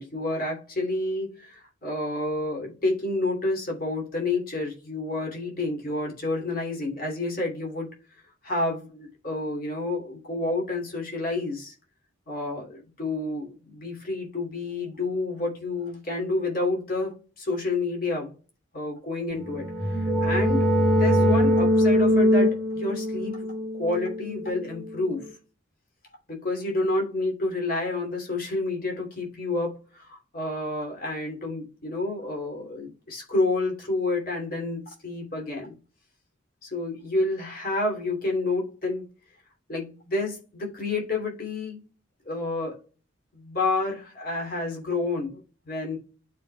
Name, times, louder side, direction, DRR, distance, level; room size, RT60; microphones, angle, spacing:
voice 1, 0.0-7.9 8.4-11.7 12.3-18.3 18.7-23.5 23.7-25.3 26.3-35.7 36.6-39.1 39.7-41.8 42.2-42.8 43.3-45.4 45.6-46.0, left 2 dB, 45° left, 2.7 m, -29 dB
sound 1, 19.4-25.0, equal, ahead, 1.5 m, -22 dB
11.5 x 4.8 x 2.3 m
head